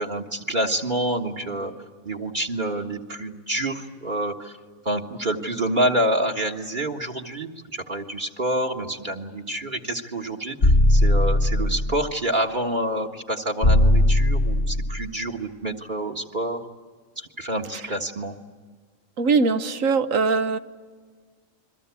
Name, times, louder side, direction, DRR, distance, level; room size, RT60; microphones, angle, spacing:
voice 1, 0.0-1.7 2.0-4.6 4.8-16.7 17.2-18.4, right 1 dB, 35° right, 4 dB, 1.7 m, -27 dB
sound 1, 10.6-12.1 13.6-15.1, left 1 dB, 45° left, 1.4 m, -18 dB
voice 2, 19.2-20.6, right 4 dB, 70° right, 10 dB, 1.4 m, -21 dB
29.0 x 23.0 x 8.3 m, 1.5 s
omnidirectional pair, 1.4 m